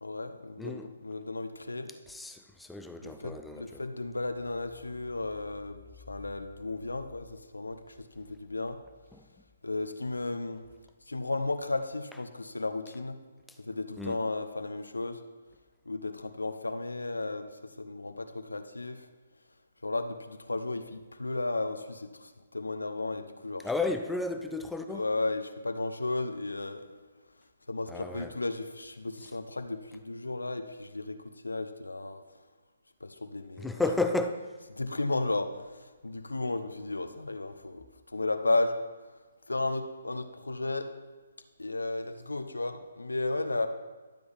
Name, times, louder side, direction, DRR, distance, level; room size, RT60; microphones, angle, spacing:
voice 1, 0.0-1.9 3.0-5.8 6.1-7.8 8.1-8.8 9.6-10.6 11.1-13.2 13.6-15.2 15.9-17.5 17.8-19.1 19.8-23.7 24.9-26.8 27.7-31.2 31.4-32.2 33.0-33.9 34.7-37.8 38.1-38.7 39.5-40.9 41.6-43.7, left 2 dB, 85° left, 0.7 m, -34 dB
voice 2, 0.6-0.9 2.1-3.8 9.1-9.3 14.0-14.2 23.6-25.1 27.9-28.3 33.6-34.5, left 3 dB, 5° left, 0.4 m, -33 dB
12.0 x 7.7 x 3.5 m
figure-of-eight pair, 140°, 0 cm